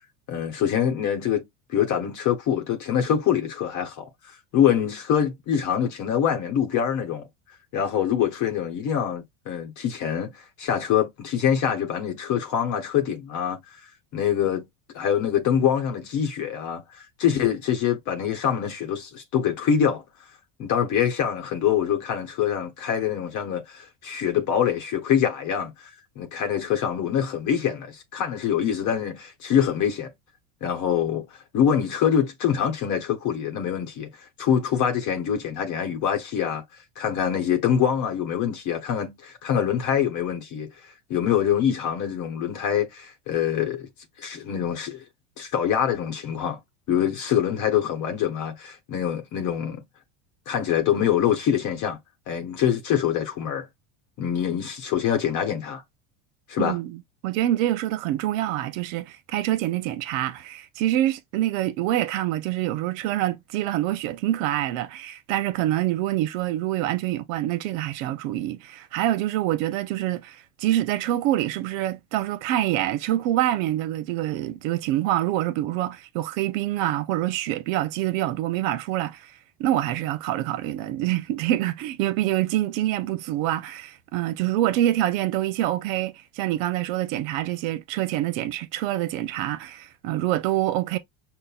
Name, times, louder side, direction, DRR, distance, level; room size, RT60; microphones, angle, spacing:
voice 1, 0.3-7.3 7.7-13.6 14.1-14.7 14.9-20.0 20.6-25.9 26.2-30.1 30.6-36.6 37.0-43.9 44.2-45.0 45.4-46.6 46.9-49.8 50.5-52.0 52.3-53.7 54.2-55.8 56.5-56.8, left 9 dB, 50° left, 0.9 m, -25 dB
voice 2, 56.6-57.0 57.2-79.3 79.6-91.0, right 14 dB, 70° right, 0.6 m, -26 dB
5.5 x 2.1 x 2.3 m
supercardioid pair, 120°, 39 cm